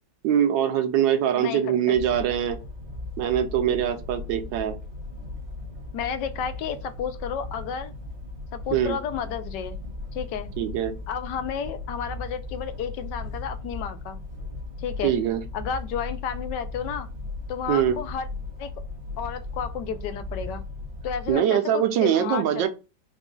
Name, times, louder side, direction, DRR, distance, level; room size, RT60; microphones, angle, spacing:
voice 1, 0.2-2.6 3.2-4.8 8.7-9.0 10.6-10.9 15.0-15.4 17.7-18.0 21.3-22.7, right 9 dB, 85° right, 1.3 m, -23 dB
voice 2, 1.3-2.0 5.9-7.9 8.5-9.8 10.1-10.5 11.1-14.2 14.8-15.2 15.5-17.1 17.5-18.3 18.6-18.7 19.2-20.6 21.0-22.7, left 7 dB, 75° left, 1.2 m, -32 dB
sound 1, 1.9-21.3, left 2 dB, 20° right, 1.1 m, -37 dB
4.1 x 2.3 x 3.7 m
omnidirectional pair, 2.0 m